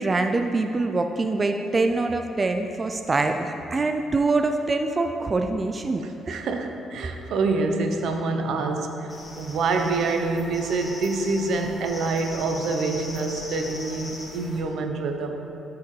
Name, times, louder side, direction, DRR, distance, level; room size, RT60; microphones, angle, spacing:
voice 1, 0.0-6.4, right 3 dB, 30° right, 5 dB, 0.3 m, -24 dB
voice 2, 6.0-15.4, right 3 dB, 75° right, 5 dB, 0.6 m, -26 dB
sound 1, 9.1-14.6, left 1 dB, 25° left, 1.5 m, -40 dB
12.0 x 4.7 x 3.1 m, 2.9 s
cardioid pair, 90°, 0 cm